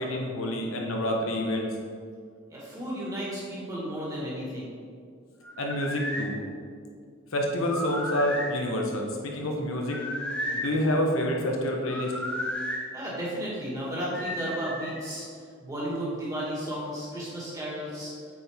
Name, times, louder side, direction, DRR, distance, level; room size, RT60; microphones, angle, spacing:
voice 1, 0.0-1.7 5.6-6.4 7.3-10.0 10.5-12.1, left 1 dB, 80° left, 1 dB, 1.0 m, -28 dB
voice 2, 2.5-4.7 12.9-15.2 15.6-18.1, equal, 15° right, -6 dB, 1.7 m, -33 dB
sound 1, 5.4-6.3 7.6-8.5 9.8-10.7 11.9-12.8 14.1-15.0, left 1 dB, 5° left, 0.6 m, -33 dB
8.2 x 4.5 x 3.5 m, 2.2 s
head